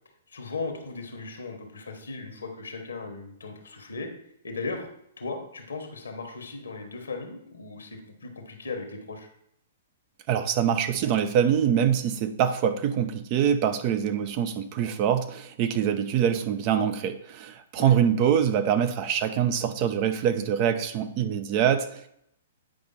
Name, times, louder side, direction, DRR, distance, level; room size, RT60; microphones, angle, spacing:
voice 1, 0.3-4.1 4.4-4.9 5.2-9.3 17.8-17.9, left 3 dB, 75° left, 4 dB, 1.3 m, -37 dB
voice 2, 10.3-22.1, right 9 dB, 35° right, 9 dB, 0.7 m, -24 dB
8.7 x 5.1 x 4.1 m, 0.72 s
figure-of-eight pair, 115°, 0 cm